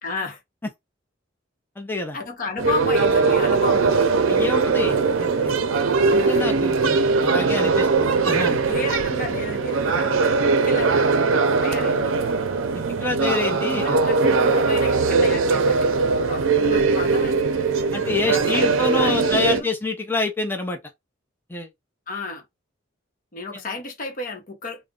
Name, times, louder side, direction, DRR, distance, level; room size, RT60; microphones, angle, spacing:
voice 1, 0.0-0.4 2.1-4.1 6.1-6.4 8.4-11.2 11.6-12.2 13.7-17.5 18.1-19.7 22.1-22.4 23.3-24.9, left 2 dB, 45° left, 0.8 m, -32 dB
voice 2, 1.8-2.2 4.3-5.8 6.1-8.6 13.0-14.0 17.9-20.8 21.5-21.7 23.5-23.6, left 2 dB, 10° left, 0.6 m, -27 dB
sound 1, 2.6-19.6, right 4 dB, 85° right, 0.5 m, -20 dB
2.4 x 2.1 x 3.5 m
head